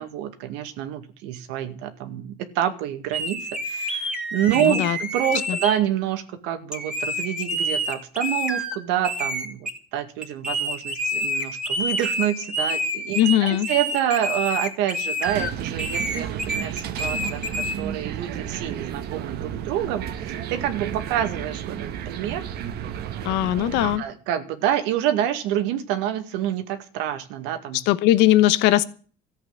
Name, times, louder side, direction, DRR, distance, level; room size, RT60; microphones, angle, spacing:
voice 1, 0.0-17.4 17.8-22.4 23.7-27.8, right 11 dB, 90° right, 8 dB, 2.1 m, -27 dB
sound 1, 3.1-5.8 6.7-8.8 9.0-9.8 10.2-15.5 15.8-17.8, equal, 5° right, 2.5 m, -28 dB
voice 2, 4.5-5.0 5.5-5.6 13.1-13.7 23.2-24.0 27.9-28.8, left 14 dB, 85° left, 14 dB, 1.1 m, -19 dB
sound 2, 15.2-24.0, right 9 dB, 65° right, 1.5 m, -32 dB
14.0 x 8.2 x 7.9 m, 0.40 s
cardioid pair, 125°, 18 cm